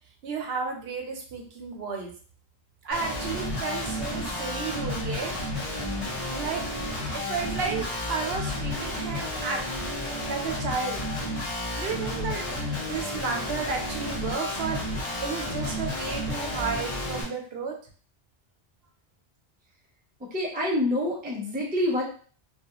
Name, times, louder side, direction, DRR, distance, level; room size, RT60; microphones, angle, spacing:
voice 1, 0.2-2.1 2.8-5.3 5.7-5.8 6.3-6.6 7.1-11.1 11.8-17.8, right 5 dB, 75° right, 2 dB, 0.8 m, -33 dB
Guitar, 2.9-17.2, left 1 dB, 35° left, 0.8 m, -31 dB
voice 2, 20.2-22.0, left 1 dB, 10° right, -2 dB, 0.4 m, -27 dB
2.3 x 2.3 x 2.8 m, 0.42 s
omnidirectional pair, 1.1 m